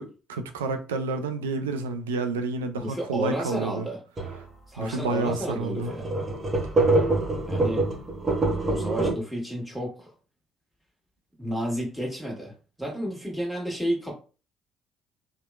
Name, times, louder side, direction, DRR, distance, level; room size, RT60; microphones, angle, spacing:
voice 1, 0.0-3.9 4.8-5.9, right 3 dB, 85° right, 0.3 m, -29 dB
voice 2, 2.7-4.0 4.7-6.1 7.4-7.9 8.7-10.1 11.4-12.5 12.8-14.2, equal, ahead, 1.3 m, -31 dB
sound 1, 4.2-4.4 4.9-5.0 5.3-5.4 5.8-9.1, right 2 dB, 35° right, 0.8 m, -25 dB
2.9 x 2.1 x 2.3 m
hypercardioid pair, 50°, 0 cm